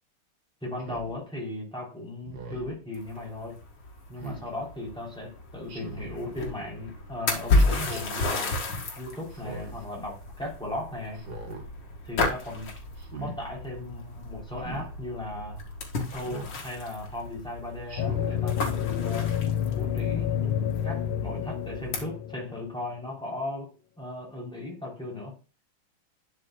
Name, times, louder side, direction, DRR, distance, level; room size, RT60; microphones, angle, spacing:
voice 1, 0.6-3.6 4.1-8.6 9.0-11.2 12.0-12.7 13.1-15.6 16.1-19.3 19.8-25.3, left 2 dB, ahead, 3.4 m, -37 dB
Speech synthesizer, 0.8-1.1 2.2-2.7 4.2-4.5 5.7-6.2 7.5-8.0 9.3-9.8 11.1-11.6 13.0-13.4 14.6-14.9 16.2-16.6 17.9-18.4, right 2 dB, 50° right, 2.1 m, -40 dB
sound 1, 2.9-22.0, left 2 dB, 70° left, 2.5 m, -33 dB
sound 2, 18.0-22.8, left 10 dB, 85° left, 1.5 m, -29 dB
11.0 x 6.0 x 2.3 m
omnidirectional pair, 2.3 m